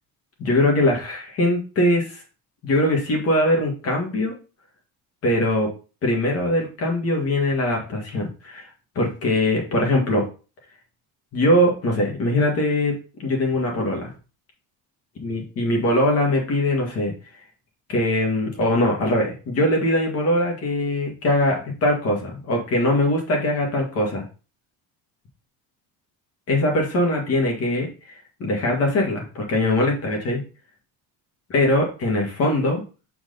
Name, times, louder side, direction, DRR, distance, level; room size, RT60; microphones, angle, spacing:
voice 1, 0.4-2.2 2.6-4.3 5.2-5.7 6.0-8.7 9.0-10.2 11.3-12.9 13.2-14.1 15.2-17.1 17.9-24.2 26.5-30.4 31.5-32.8, left 1 dB, 40° left, 0 dB, 2.0 m, -21 dB
7.3 x 4.7 x 4.0 m, 0.34 s
cardioid pair, 180°, 37 cm